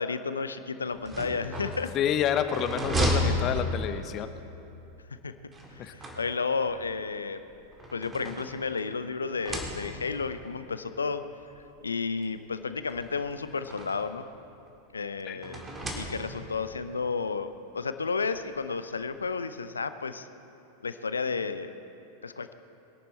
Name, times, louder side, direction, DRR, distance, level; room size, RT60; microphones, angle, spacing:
voice 1, 0.0-1.9 5.2-5.3 5.7-7.4 7.9-11.2 11.8-14.3 14.9-15.6 15.9-20.3 20.8-21.7 22.2-22.5, left 4 dB, 75° left, 12 dB, 0.6 m, -32 dB
sound 1, 0.9-4.2 5.5-6.7 7.5-8.9 9.3-10.2 11.2-11.3 11.6-11.7 12.9-14.2 15.4-16.6, equal, 20° right, 2.4 m, -33 dB
voice 2, 1.9-4.3 5.8-5.9 15.3-15.4, left 9 dB, 35° left, 10 dB, 0.8 m, -28 dB
22.5 x 11.5 x 4.3 m, 2.9 s
figure-of-eight pair, 90°, 0 cm